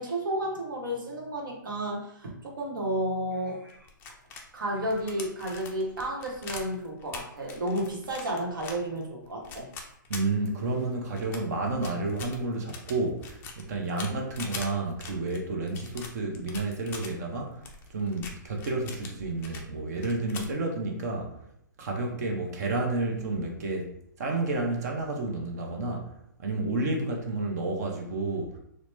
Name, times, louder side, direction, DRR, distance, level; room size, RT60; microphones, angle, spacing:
voice 1, 0.0-3.9 4.5-9.7, right 1 dB, 70° right, -1 dB, 1.0 m, -32 dB
sound 1, 3.7-10.8 11.2-17.1 17.6-19.7 19.9-20.6, left 4 dB, 20° left, 0.3 m, -43 dB
voice 2, 10.1-17.6 17.9-21.3 21.8-23.9 24.2-26.1 26.4-28.6, right 2 dB, 50° right, 1 dB, 0.6 m, -30 dB
2.9 x 2.0 x 3.1 m, 0.73 s
hypercardioid pair, 135°, 11 cm